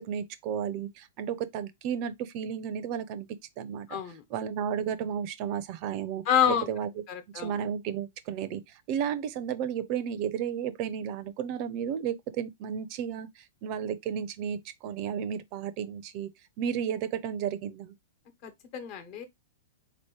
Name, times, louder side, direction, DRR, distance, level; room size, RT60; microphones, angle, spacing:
voice 1, 0.0-3.3 3.6-4.0 4.3-6.2 6.7-6.9 7.3-8.6 8.9-13.3 13.6-16.3 16.6-17.9, right 8 dB, 45° right, 0.6 m, -33 dB
voice 2, 3.9-4.2 6.2-6.7 7.1-7.6 18.4-19.2, left 8 dB, 45° left, 1.2 m, -28 dB
4.1 x 2.9 x 3.1 m
figure-of-eight pair, 105°, 0 cm